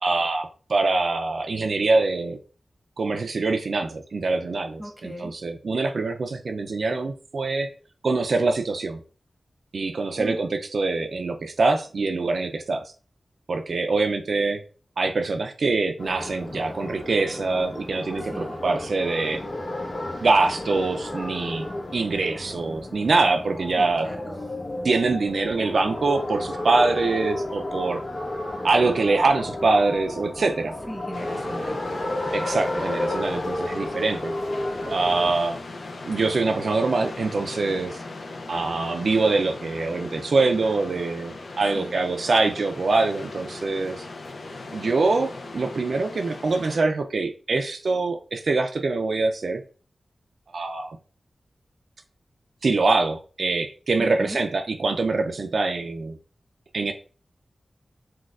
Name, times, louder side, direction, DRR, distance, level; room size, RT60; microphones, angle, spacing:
voice 1, 0.0-2.4 3.0-7.7 8.0-9.0 9.7-12.8 13.5-14.6 15.0-19.4 20.2-24.1 24.8-28.0 28.6-30.7 32.3-34.3 34.9-35.6 36.1-38.0 38.5-44.0 44.7-49.6 50.5-51.0 52.6-56.2 56.7-56.9, right 3 dB, 70° right, 5 dB, 0.3 m, -24 dB
voice 2, 4.8-5.3 10.2-10.4 18.2-18.6 23.8-24.6 30.9-31.8 41.7-42.0 54.0-54.4, equal, 10° right, 2 dB, 1.0 m, -37 dB
sound 1, 16.0-35.3, left 1 dB, 60° left, 1.0 m, -32 dB
sound 2, 31.1-46.8, left 2 dB, 80° left, 0.4 m, -38 dB
4.1 x 2.3 x 2.3 m, 0.37 s
cardioid pair, 55°, 0 cm